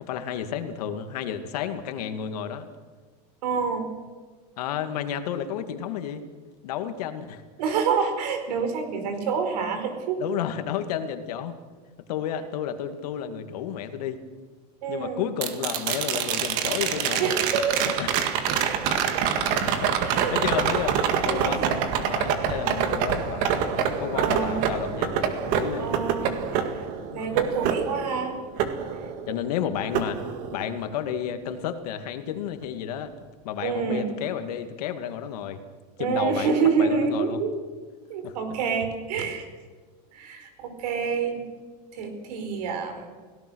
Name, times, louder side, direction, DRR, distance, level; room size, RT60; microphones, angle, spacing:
voice 1, 0.0-2.7 4.6-6.2 6.6-7.4 10.2-11.5 12.1-14.2 14.9-17.4 17.8-18.4 19.3-21.6 22.1-23.5 24.0-25.9 27.1-27.5 29.3-30.2 30.5-33.1 33.4-35.6 36.0-37.4 38.2-38.4, left 9 dB, 70° left, 8 dB, 2.3 m, -31 dB
voice 2, 3.4-3.9 7.6-10.2 14.8-15.2 17.2-17.8 18.7-19.0 20.1-20.3 21.3-21.7 24.1-24.6 25.8-26.8 27.1-28.4 33.6-34.1 36.0-37.6 38.1-39.5 40.1-41.5 41.9-43.1, right 6 dB, 75° right, 7 dB, 4.7 m, -27 dB
sound 1, 15.4-29.5 29.9-31.0 33.2-33.3, right 7 dB, 40° right, 1.9 m, -26 dB
30.0 x 17.5 x 6.4 m, 1.4 s
supercardioid pair, 175°, 21 cm